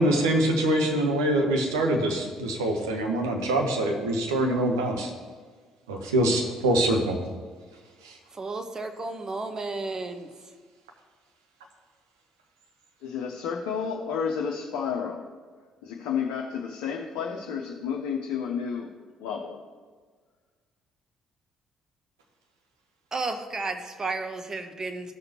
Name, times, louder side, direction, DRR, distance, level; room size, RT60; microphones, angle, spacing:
voice 1, 0.0-5.1 5.9-7.2 8.0-8.2, right 1 dB, 80° right, 2 dB, 1.0 m, -24 dB
voice 2, 8.3-10.3 23.1-25.1, right 3 dB, 30° right, 7 dB, 1.0 m, -33 dB
voice 3, 13.0-15.2 15.8-18.9 19.2-19.6, left 6 dB, 65° left, -1 dB, 0.7 m, -31 dB
15.0 x 6.6 x 2.9 m, 1.5 s
figure-of-eight pair, 45°, 2 cm